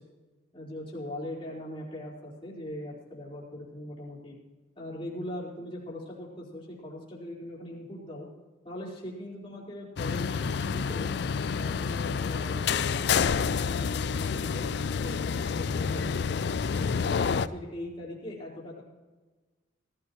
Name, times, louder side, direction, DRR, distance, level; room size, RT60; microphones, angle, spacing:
voice 1, 0.5-4.4 4.8-8.3 8.6-11.1 11.5-16.2 16.7-18.8, left 1 dB, 25° left, -5 dB, 4.3 m, -40 dB
sound 1, 10.0-17.5, left 6 dB, 55° left, 0.4 m, -28 dB
19.0 x 14.5 x 3.1 m, 1.3 s
head